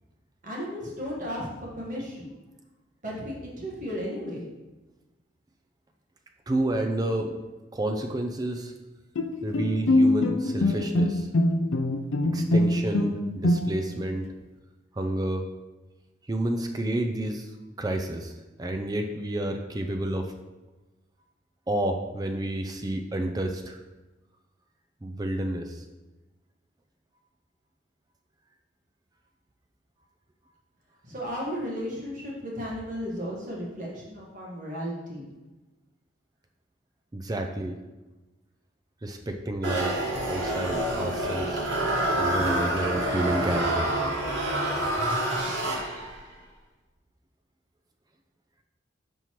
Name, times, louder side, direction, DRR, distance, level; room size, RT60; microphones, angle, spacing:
voice 1, 0.4-2.3 3.0-4.4 31.1-35.3, equal, 45° right, -4 dB, 1.4 m, -34 dB
voice 2, 6.5-7.4 7.7-8.7 9.4-11.3 12.3-14.3 14.9-15.5 16.3-17.5 17.8-18.3 18.6-20.3 21.7-23.8 25.0-25.8 37.1-37.8 39.0-41.7 42.2-43.9, right 1 dB, 20° right, 5 dB, 0.4 m, -30 dB
Bowed string instrument, 9.1-14.0, left 1 dB, 85° left, 0.5 m, -24 dB
sound 1, 39.6-46.2, right 1 dB, 75° right, 1.4 m, -27 dB
5.8 x 5.3 x 3.1 m, 1.1 s
head